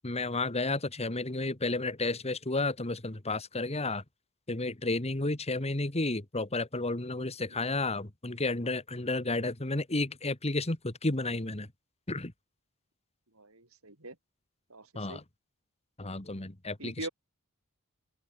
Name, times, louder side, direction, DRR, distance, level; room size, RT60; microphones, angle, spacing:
voice 1, 0.0-4.0 4.5-11.7 12.1-12.3 14.9-15.2 16.0-17.1, left 2 dB, 30° left, 2.0 m, -32 dB
voice 2, 13.3-14.2 14.7-15.2 16.8-17.1, right 2 dB, 70° right, 5.6 m, -43 dB
open air
head